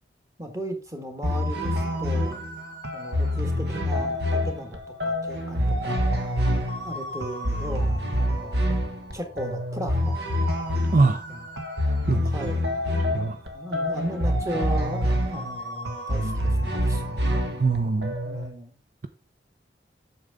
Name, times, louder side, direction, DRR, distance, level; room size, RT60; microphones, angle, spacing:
voice 1, 0.4-2.4 2.9-6.0 6.8-8.6 9.1-10.2 11.3-11.5 12.2-12.7 13.4-17.2 18.2-18.7, equal, 15° right, 1.7 m, -36 dB
sound 1, 1.2-18.5, equal, 65° right, 1.5 m, -26 dB
voice 2, 10.9-11.2 12.1-12.2 13.1-13.4 17.6-18.1, right 3 dB, 50° right, 0.5 m, -21 dB
8.5 x 6.8 x 3.6 m
head